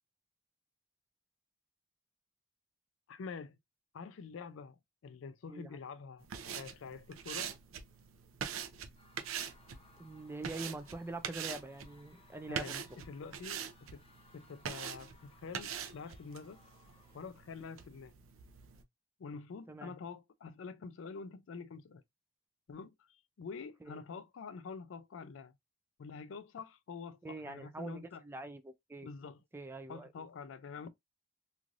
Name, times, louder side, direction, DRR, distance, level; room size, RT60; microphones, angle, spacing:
voice 1, 3.1-3.6 3.9-6.3 6.5-7.5 12.5-14.0 14.3-16.6 17.1-18.2 19.2-22.0 22.7-22.9 23.4-25.5 26.0-28.2 29.0-29.4 29.9-30.9, left 5 dB, 70° left, 0.4 m, -46 dB
sound 1, 6.2-18.8, right 7 dB, 80° right, 0.5 m, -44 dB
Screaming / Cheering / Crowd, 8.9-17.5, left 4 dB, 30° left, 0.6 m, -65 dB
voice 2, 10.0-12.9 19.7-19.9 23.8-24.0 27.2-29.1 29.5-30.1, right 2 dB, 10° right, 0.3 m, -44 dB
3.1 x 2.5 x 2.5 m
head